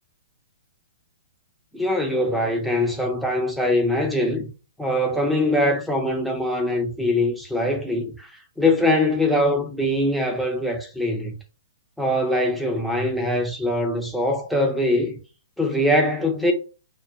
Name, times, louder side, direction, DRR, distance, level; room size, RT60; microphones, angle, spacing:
voice 1, 1.7-4.5 4.8-8.3 8.6-11.3 12.0-15.2 15.6-16.5, left 1 dB, ahead, 0.5 m, -22 dB
2.2 x 2.1 x 2.7 m
hypercardioid pair, 130°, 0 cm